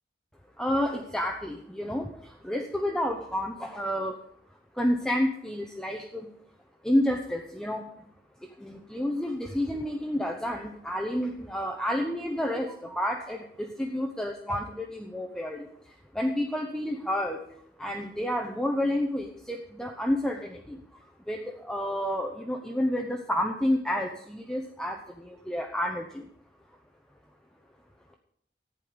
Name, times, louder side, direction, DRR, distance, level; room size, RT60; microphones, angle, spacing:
voice 1, 0.6-4.2 4.7-6.3 6.8-7.9 8.6-17.4 17.8-26.3, left 1 dB, 5° left, 1 dB, 0.9 m, -30 dB
14.5 x 9.8 x 5.2 m, 0.68 s
head